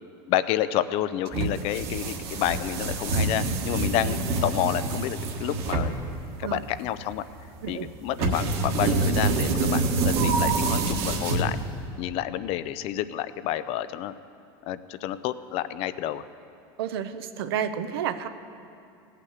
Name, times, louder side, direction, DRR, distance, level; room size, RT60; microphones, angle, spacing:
voice 1, 0.3-5.9 6.4-7.2 7.7-11.6 12.0-14.1 14.6-16.2, left 12 dB, 55° left, 14 dB, 0.5 m, -29 dB
sound 1, 1.3-11.9, right 3 dB, 55° right, 1.5 m, -26 dB
voice 2, 16.8-18.3, right 9 dB, 90° right, 10 dB, 0.7 m, -30 dB
16.0 x 5.8 x 8.1 m, 2.6 s
supercardioid pair, 125°, 12 cm